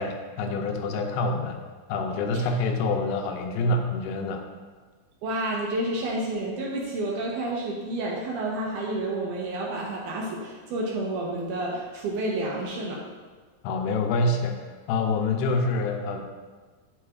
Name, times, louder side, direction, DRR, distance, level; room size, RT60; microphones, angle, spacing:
voice 1, 0.0-1.6 1.9-4.4 13.6-16.3, left 2 dB, 85° left, 4 dB, 2.5 m, -26 dB
voice 2, 5.2-13.0, right 1 dB, 75° right, -3 dB, 2.0 m, -30 dB
11.5 x 4.0 x 2.4 m, 1.4 s
omnidirectional pair, 4.3 m